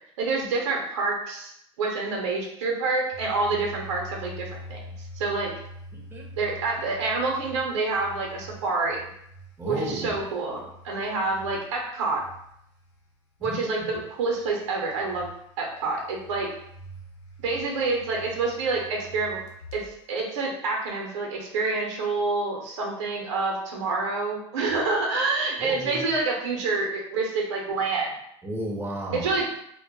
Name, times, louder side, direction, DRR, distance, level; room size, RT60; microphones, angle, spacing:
voice 1, 0.2-1.5 1.8-5.5 6.4-9.1 9.6-12.2 13.4-15.3 15.6-16.5 17.4-19.4 19.7-28.1 29.1-29.5, right 3 dB, 80° right, -1 dB, 0.7 m, -27 dB
sound 1, 3.1-13.1 14.3-19.9, equal, 75° left, 0.6 m, -45 dB
voice 2, 5.9-6.3 9.6-10.1 13.4-13.9 25.6-26.0 28.4-29.3, right 1 dB, 15° right, -1 dB, 0.6 m, -33 dB
2.2 x 2.0 x 2.9 m, 0.73 s
hypercardioid pair, 90°, 15 cm